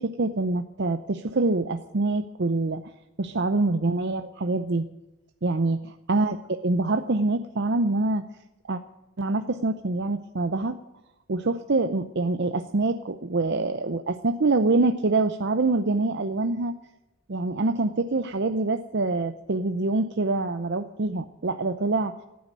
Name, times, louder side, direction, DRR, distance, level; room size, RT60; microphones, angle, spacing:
voice 1, 0.0-2.9 3.2-4.9 5.4-5.8 6.1-8.2 8.7-8.8 9.2-10.8 11.3-16.7 17.3-22.1, right 3 dB, 55° right, 8 dB, 0.7 m, -25 dB
15.5 x 9.5 x 9.2 m, 0.95 s
head